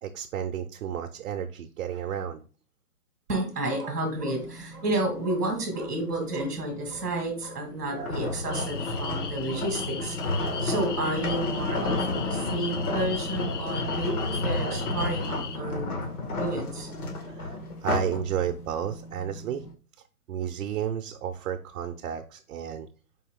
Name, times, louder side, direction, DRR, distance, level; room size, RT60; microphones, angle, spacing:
voice 1, 0.0-2.5 17.3-19.6 20.3-22.9, right 9 dB, 60° right, 5 dB, 0.5 m, -32 dB
voice 2, 3.3-15.9 16.2-17.1, right 1 dB, 5° right, -10 dB, 0.4 m, -31 dB
sound 1, 4.1-19.7, right 1 dB, 90° left, 1.0 m, -46 dB
sound 2, 8.0-18.2 18.7-18.9, left 2 dB, 65° left, 1.6 m, -31 dB
sound 3, 8.5-15.6, left 8 dB, 50° left, 0.6 m, -39 dB
4.5 x 2.8 x 3.6 m, 0.37 s
hypercardioid pair, 140°, 46 cm